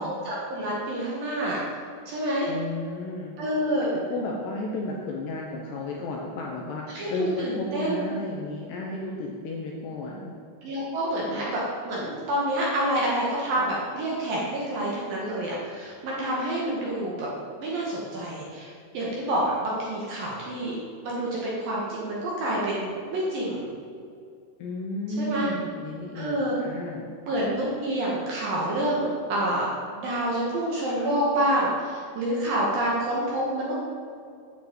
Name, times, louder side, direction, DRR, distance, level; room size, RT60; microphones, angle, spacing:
voice 1, 0.0-1.6 2.1-2.5 3.4-3.9 6.9-8.1 10.6-17.3 17.6-20.8 21.0-23.7 25.2-25.5 26.1-26.6 27.2-29.7 30.0-33.7, right 1 dB, 60° right, -5 dB, 2.6 m, -28 dB
voice 2, 2.5-3.4 3.9-10.3 24.6-27.1, left 2 dB, 75° left, -1 dB, 2.5 m, -33 dB
10.5 x 5.8 x 7.7 m, 2.3 s
omnidirectional pair, 5.8 m